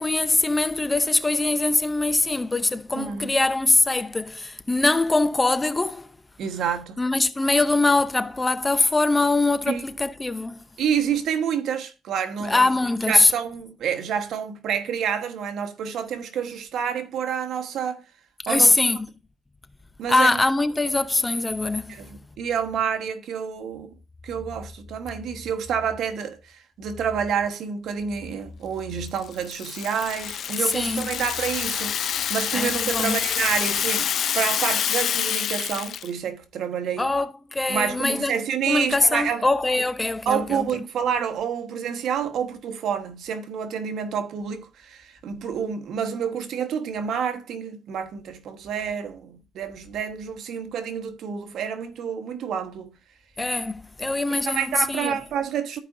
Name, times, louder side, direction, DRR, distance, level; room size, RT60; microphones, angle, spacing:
voice 1, 0.0-6.1 7.0-10.6 12.4-13.3 18.4-19.1 20.1-22.0 30.7-31.1 32.5-33.2 37.0-38.3 38.7-40.7 53.4-55.2, left 2 dB, 20° left, 0.5 m, -22 dB
voice 2, 2.9-3.3 6.4-7.0 9.7-9.8 10.8-12.7 13.1-18.0 18.5-18.8 20.0-20.4 21.9-23.9 24.2-37.1 37.7-39.5 39.8-39.9 40.2-52.9 54.3-55.8, right 7 dB, 75° right, 1.2 m, -28 dB
Rattle (instrument), 29.2-36.1, left 9 dB, 65° left, 0.3 m, -27 dB
13.5 x 5.1 x 2.6 m
cardioid pair, 90°, 0 cm